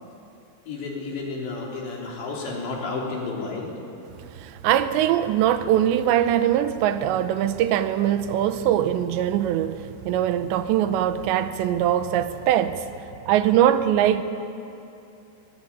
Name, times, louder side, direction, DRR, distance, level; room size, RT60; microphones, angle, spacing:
voice 1, 0.7-3.7, left 3 dB, 75° left, -2 dB, 6.0 m, -31 dB
voice 2, 4.3-12.8 13.3-14.2, right 11 dB, 85° right, 11 dB, 3.2 m, -22 dB
22.5 x 20.0 x 9.0 m, 2.8 s
omnidirectional pair, 5.0 m